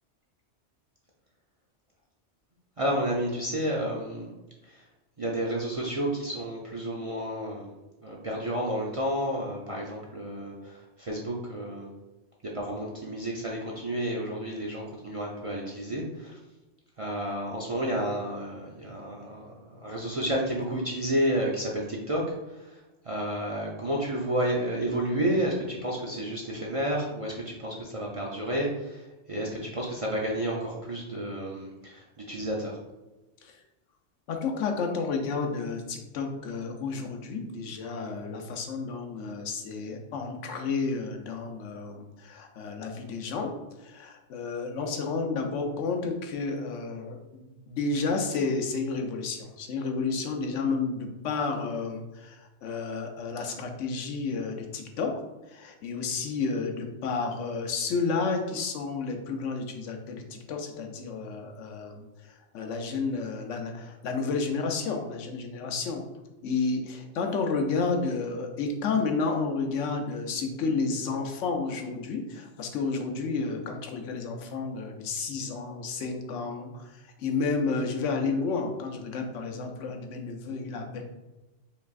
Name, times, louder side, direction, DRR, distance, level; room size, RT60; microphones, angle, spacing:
voice 1, 2.8-4.3 4.7-4.8 5.2-7.7 8.0-11.9 12.5-16.4 17.0-22.2 22.5-22.7 23.0-29.0 29.3-32.8, right 1 dB, 40° right, -3 dB, 0.5 m, -31 dB
voice 2, 34.3-43.5 43.8-55.2 55.5-66.0 66.4-81.1, left 4 dB, 85° left, 4 dB, 1.0 m, -31 dB
5.2 x 3.4 x 2.4 m, 1.1 s
omnidirectional pair, 1.2 m